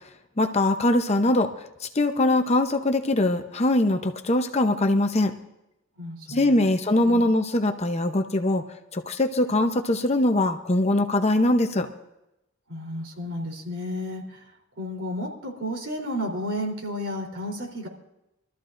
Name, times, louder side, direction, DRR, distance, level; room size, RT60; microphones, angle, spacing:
voice 1, 0.4-1.5 1.8-5.3 6.3-8.6 8.9-11.9, left 1 dB, 30° left, 6 dB, 0.8 m, -22 dB
voice 2, 6.0-6.6 7.0-7.2 12.7-14.4 14.8-17.9, equal, 70° right, 0 dB, 3.6 m, -32 dB
23.5 x 13.5 x 2.6 m, 0.88 s
head